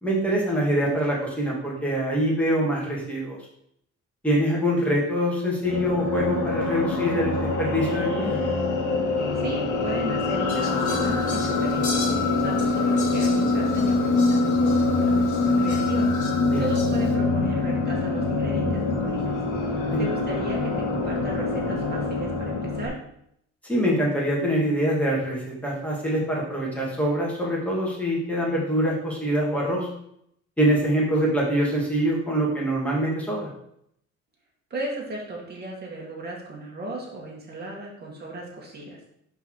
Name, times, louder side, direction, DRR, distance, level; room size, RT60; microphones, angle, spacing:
voice 1, 0.0-3.4 4.2-8.4 16.4-16.7 19.9-20.0 23.6-29.9 30.6-33.5, equal, 5° left, -4 dB, 2.4 m, -24 dB
sound 1, 5.6-22.9, left 3 dB, 90° left, 1.4 m, -24 dB
voice 2, 9.4-12.0 12.3-16.1 16.6-19.4 19.7-23.0 34.7-39.0, right 1 dB, 35° right, -3 dB, 2.0 m, -35 dB
Fowl, 10.5-17.1, left 3 dB, 75° left, 1.8 m, -39 dB
5.3 x 4.1 x 4.9 m, 0.73 s
cardioid pair, 90°, 30 cm